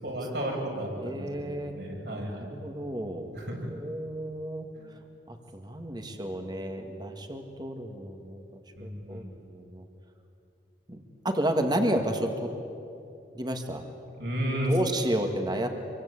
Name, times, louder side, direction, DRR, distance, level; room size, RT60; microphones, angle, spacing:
voice 1, 0.0-0.9 1.2-2.6 3.3-3.7 4.8-4.9 6.1-6.2 8.8-9.4 14.2-14.7, right 1 dB, 65° right, 0 dB, 7.0 m, -33 dB
voice 2, 1.0-1.8 2.3-3.3 3.6-4.7 5.3-8.4 8.8-9.9 10.9-11.0 11.2-12.5 13.3-13.8 14.7-15.7, right 1 dB, 25° right, 5 dB, 2.1 m, -31 dB
26.5 x 24.5 x 8.5 m, 2.7 s
head